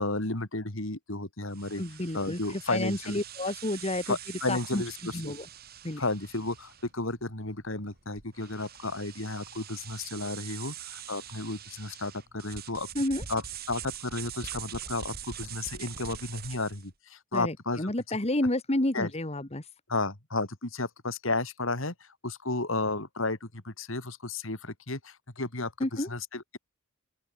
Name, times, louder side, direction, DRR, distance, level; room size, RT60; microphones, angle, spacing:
voice 1, 0.0-1.8 2.1-3.2 4.1-5.3 6.0-12.9 13.3-13.4 13.7-17.9 18.9-19.1 19.9-26.6, left 2 dB, 65° left, 3.1 m, -33 dB
sound 1, 1.5-16.9, right 9 dB, 45° right, 2.0 m, -44 dB
voice 2, 1.8-4.2 4.5-4.8 5.1-5.5 5.8-6.0 13.0-13.2 17.3-19.7 25.8-26.1, left 1 dB, 30° left, 1.6 m, -30 dB
open air
head